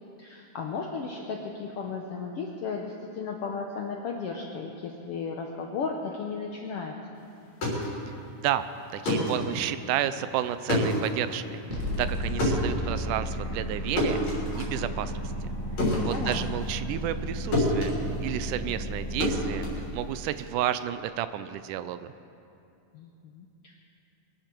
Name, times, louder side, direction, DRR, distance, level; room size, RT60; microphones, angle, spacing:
voice 1, 0.2-7.2 16.0-16.5 22.9-23.8, left 5 dB, 75° left, 1 dB, 1.3 m, -35 dB
sound 1, 7.4-17.3 17.5-20.5, left 1 dB, 55° left, 4.6 m, -30 dB
voice 2, 8.4-8.7 8.9-11.6 12.0-14.2 14.6-15.3 16.0-22.1, right 11 dB, 80° right, 12 dB, 2.0 m, -31 dB
sound 2, 11.7-19.7, equal, 15° right, 3.2 m, -33 dB
22.5 x 11.5 x 4.5 m, 2.7 s
omnidirectional pair, 3.8 m